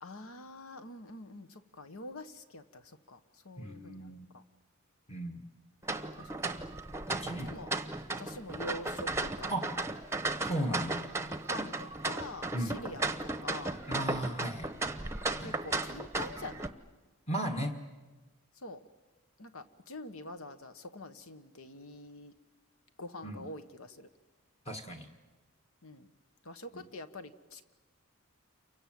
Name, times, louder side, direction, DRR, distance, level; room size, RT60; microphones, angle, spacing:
voice 1, 0.0-2.8 3.1-3.2 3.4-4.4 6.2-6.3 7.4-7.7 8.2-9.6 11.4-13.8 15.4-16.7 18.6-18.8 19.4-22.3 23.0-24.1 25.8-26.1 26.4-27.7, left 2 dB, 70° left, 10 dB, 1.4 m, -45 dB
voice 2, 3.6-4.3 5.1-5.4 7.1-7.5 9.5-9.7 10.4-11.0 12.5-12.8 13.9-14.7 15.4-15.6 17.3-17.8 23.2-23.5 24.6-25.1 26.7-26.8, right 1 dB, 25° left, 3 dB, 1.7 m, -36 dB
sound 1, 5.8-16.7, right 2 dB, 10° right, 0.9 m, -35 dB
29.0 x 24.0 x 7.8 m, 1.3 s
head